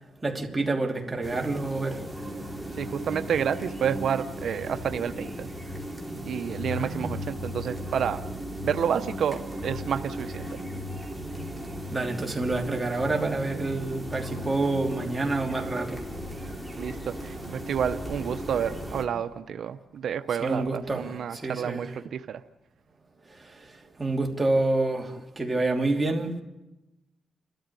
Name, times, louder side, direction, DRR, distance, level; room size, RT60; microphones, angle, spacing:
voice 1, 0.2-2.0 6.7-7.2 11.9-16.0 20.4-21.9 24.0-26.4, right 2 dB, 15° right, 3.0 m, -28 dB
sound 1, 1.2-19.0, equal, 5° left, 3.4 m, -36 dB
voice 2, 2.8-5.5 6.3-8.2 8.6-10.6 16.8-22.4, right 8 dB, 75° right, 0.8 m, -30 dB
29.5 x 13.0 x 9.7 m
cardioid pair, 100°, 0 cm